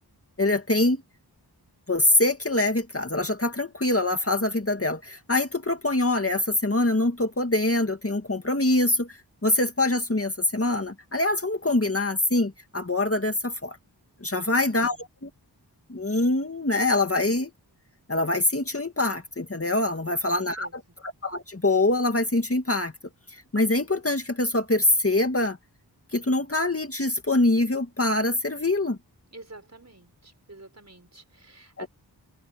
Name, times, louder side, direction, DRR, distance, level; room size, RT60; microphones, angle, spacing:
voice 1, 0.4-1.0 1.9-13.8 14.2-15.0 15.2-15.3 15.9-17.5 18.1-22.9 23.3-25.6 26.1-29.0 31.8-31.9, left 2 dB, 35° left, 2.2 m, -24 dB
voice 2, 14.4-15.0 20.0-20.3 20.6-20.7 29.3-31.9, right 2 dB, 40° right, 6.2 m, -48 dB
wide cardioid pair, 70°, 41 cm